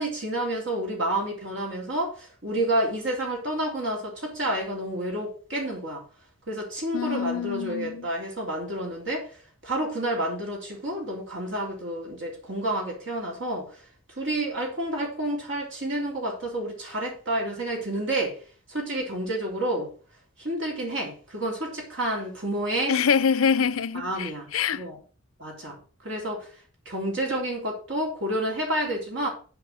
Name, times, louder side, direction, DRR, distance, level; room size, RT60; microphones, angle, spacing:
voice 1, 0.0-6.0 6.5-9.3 9.6-13.7 14.2-18.4 18.7-19.9 20.4-22.9 23.9-25.0 25.4-25.8 26.0-26.5 26.9-29.3, right 1 dB, 60° right, 3.6 m, -29 dB
voice 2, 6.9-8.1 22.9-24.8, left 6 dB, 85° left, 0.6 m, -25 dB
8.2 x 4.9 x 6.5 m
head